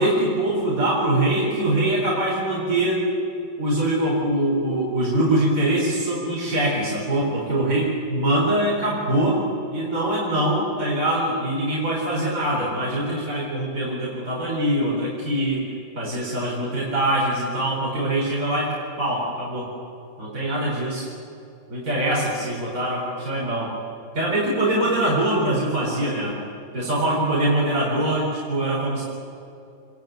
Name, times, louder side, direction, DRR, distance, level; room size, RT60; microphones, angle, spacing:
voice 1, 0.0-3.0 3.6-9.4 9.7-15.6 15.9-18.7 19.0-19.7 20.2-21.1 21.7-23.7 24.1-26.3 26.7-29.0, right 1 dB, 45° right, -4 dB, 4.8 m, -23 dB
27.0 x 20.5 x 9.3 m, 2.6 s
omnidirectional pair, 2.0 m